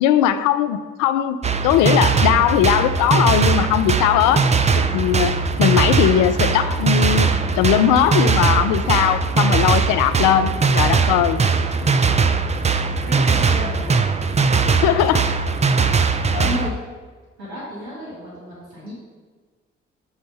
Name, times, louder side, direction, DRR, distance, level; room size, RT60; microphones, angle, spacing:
voice 1, 0.0-4.5 4.8-7.3 7.6-11.4 14.7-15.3 16.3-16.5, left 10 dB, 70° left, 12 dB, 0.5 m, -19 dB
sound 1, 1.4-16.7, right 4 dB, 20° right, 0.5 m, -19 dB
voice 2, 13.0-14.1 16.4-16.7 17.4-18.9, left 1 dB, 90° right, -7 dB, 1.6 m, -32 dB
5.6 x 4.3 x 5.3 m, 1.4 s
hypercardioid pair, 40°, 32 cm